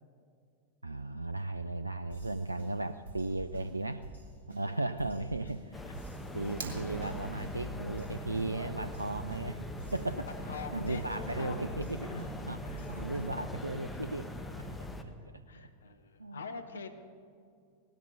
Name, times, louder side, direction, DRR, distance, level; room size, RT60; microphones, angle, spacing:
voice 1, 0.8-4.0 4.5-5.8 6.3-10.3 10.7-12.1 12.5-12.6 12.9-14.3 14.6-14.7 16.2-16.4, right 2 dB, 85° right, 12 dB, 0.3 m, -36 dB
sound 1, 2.1-13.6, right 2 dB, 90° left, 3.6 m, -49 dB
voice 2, 3.7-4.0 4.6-5.5 5.8-5.9 10.1-11.6 12.0-12.3 12.6-13.0 14.6-14.8 15.5-16.9, left 4 dB, 70° left, 8 dB, 1.0 m, -45 dB
sound 2, 5.7-15.0, left 1 dB, 10° left, 1.2 m, -41 dB
Fire, 6.4-7.4, right 4 dB, 60° right, 2.0 m, -41 dB
18.0 x 12.5 x 5.5 m, 2.4 s
figure-of-eight pair, 90°, 0 cm